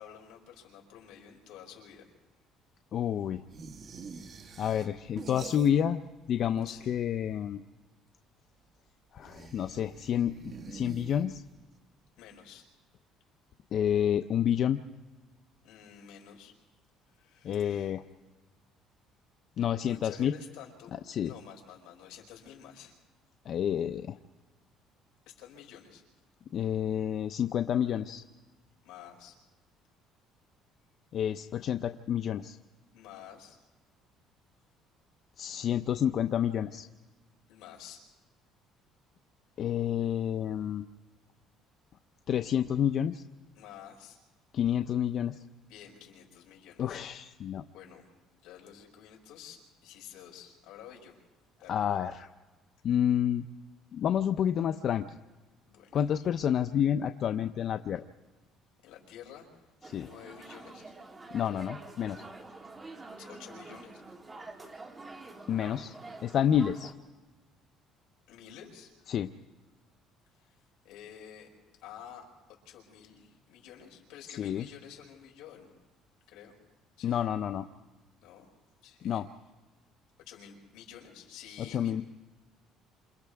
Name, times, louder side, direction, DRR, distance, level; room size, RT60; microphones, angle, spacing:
voice 1, 0.0-2.1 6.6-6.9 12.2-12.7 15.6-16.5 17.1-17.9 19.8-20.9 21.2-22.9 25.3-26.0 28.8-29.4 32.9-33.6 37.5-38.0 43.6-44.2 45.7-47.0 47.7-48.1 48.4-51.2 51.6-51.8 55.7-56.1 58.8-59.6 60.0-60.9 63.2-64.0 68.3-69.1 70.3-70.6 70.8-71.5 71.8-75.7 76.3-76.6 77.0-77.2 78.2-78.4 78.8-79.2 80.3-82.0, left 9 dB, 80° left, 0 dB, 5.7 m, -50 dB
voice 2, 2.9-3.4 4.6-6.0 6.3-7.6 9.1-11.4 13.7-14.8 17.4-18.0 19.6-20.3 21.1-21.3 23.5-24.2 26.5-28.2 31.1-32.6 35.4-36.8 39.6-40.8 42.3-43.2 44.5-45.4 46.8-47.6 51.7-52.3 52.8-53.4 53.9-55.1 55.9-58.0 59.9-60.1 61.3-62.2 65.5-65.9 66.2-66.9 69.1-69.3 74.4-74.7 77.0-77.7 79.0-79.3 81.7-82.0, left 9 dB, 50° left, 8 dB, 0.6 m, -29 dB
sound 1, 3.5-6.1 6.3-7.2 9.2-11.7, right 4 dB, 35° right, 1.4 m, -47 dB
sound 2, 59.8-66.9, right 3 dB, 20° right, 2.0 m, -47 dB
28.5 x 27.5 x 3.5 m, 1.2 s
cardioid pair, 135°, 0 cm